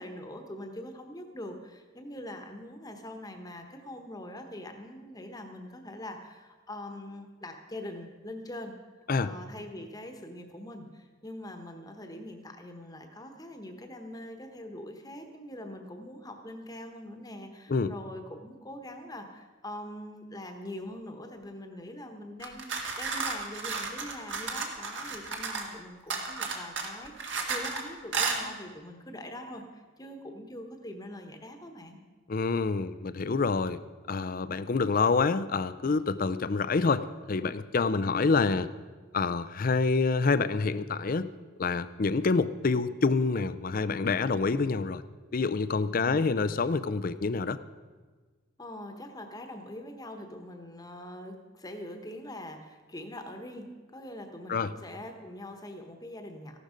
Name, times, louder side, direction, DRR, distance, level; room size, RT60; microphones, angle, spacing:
voice 1, 0.0-8.7 9.2-32.0 37.8-38.3 48.6-56.6, left 1 dB, 20° left, 5 dB, 1.1 m, -43 dB
sound 1, 22.4-25.7 26.1-27.8 28.1-28.4, right 4 dB, 60° right, 1.8 m, -33 dB
voice 2, 32.3-33.8 34.1-38.7 39.1-41.3 41.6-45.0 45.3-47.6 54.5-54.7, left 4 dB, 45° left, 15 dB, 0.5 m, -27 dB
15.0 x 12.0 x 5.1 m, 1.4 s
head